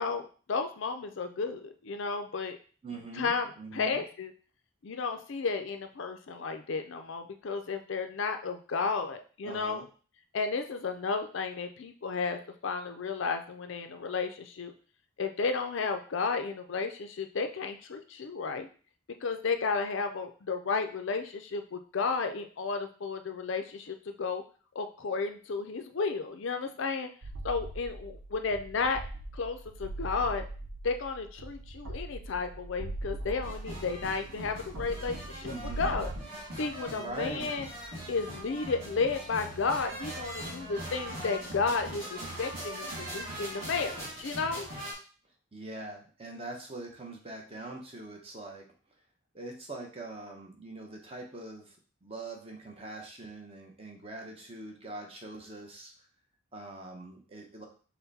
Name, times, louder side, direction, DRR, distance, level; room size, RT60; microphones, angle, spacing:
voice 1, 0.0-2.6 3.1-4.3 4.8-9.8 10.3-14.7 15.2-18.7 19.2-24.4 24.8-27.1 27.4-29.0 29.3-30.4 30.8-36.1 36.6-37.7 38.1-44.7, left 4 dB, 60° left, 7 dB, 0.5 m, -33 dB
voice 2, 2.8-4.0 9.4-9.9 35.4-36.0 37.0-37.5 45.5-48.7 49.3-51.8 52.0-55.9 56.5-57.7, right 2 dB, 25° right, 1 dB, 0.8 m, -43 dB
sound 1, 27.2-36.2, right 2 dB, 85° right, 0.6 m, -41 dB
sound 2, 33.4-44.9, right 1 dB, 50° right, 2.4 m, -41 dB
5.7 x 2.2 x 4.1 m, 0.40 s
head